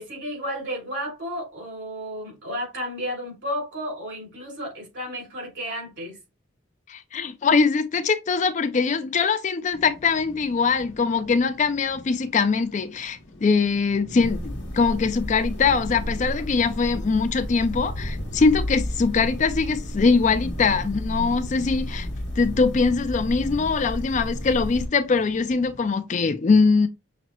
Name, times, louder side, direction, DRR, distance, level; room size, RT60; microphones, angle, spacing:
voice 1, 0.0-6.2, equal, 70° right, 2.7 m, -32 dB
voice 2, 6.9-22.1 22.4-26.9, left 4 dB, 40° left, 0.4 m, -22 dB
sound 1, 9.7-25.9, left 1 dB, 80° left, 0.9 m, -43 dB
sound 2, 14.2-24.9, equal, 60° left, 1.3 m, -32 dB
5.9 x 2.0 x 2.9 m
head